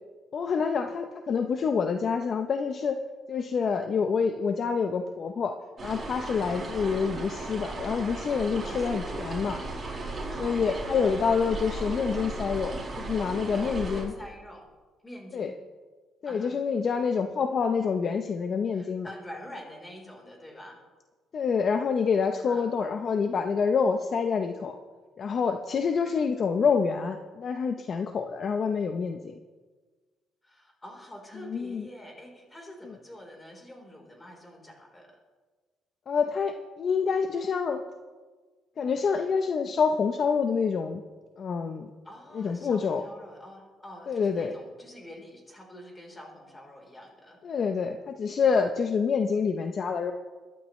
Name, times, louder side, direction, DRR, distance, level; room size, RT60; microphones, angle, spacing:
voice 1, 0.3-3.0 3.3-5.5 5.8-9.6 10.4-12.7 13.0-14.1 15.3-15.5 16.2-19.1 21.3-24.8 25.2-29.4 31.5-31.8 36.1-37.8 38.8-41.0 41.4-41.9 42.3-43.0 44.1-44.6 47.4-50.1, left 5 dB, 45° left, 6 dB, 0.7 m, -27 dB
sound 1, 5.8-14.0, right 2 dB, 30° right, 4.5 m, -36 dB
voice 2, 8.6-9.4 10.3-10.8 13.6-14.7 15.0-15.6 16.2-16.6 18.7-20.8 22.5-22.7 30.4-35.2 42.0-47.4, left 1 dB, 15° left, 0 dB, 3.8 m, -46 dB
22.5 x 11.5 x 3.2 m, 1.4 s
cardioid pair, 130°, 0 cm